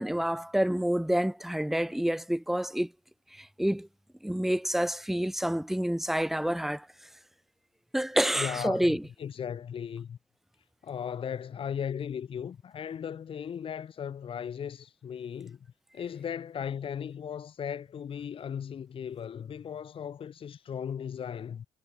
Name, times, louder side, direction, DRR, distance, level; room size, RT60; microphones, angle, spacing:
voice 1, 0.0-2.9 3.3-3.9 4.2-6.9 7.9-9.0, equal, ahead, 0.7 m, -28 dB
voice 2, 8.4-8.9 9.2-10.2 10.8-15.6 15.9-21.7, left 8 dB, 50° left, 1.8 m, -37 dB
supercardioid pair, 75°, 12 cm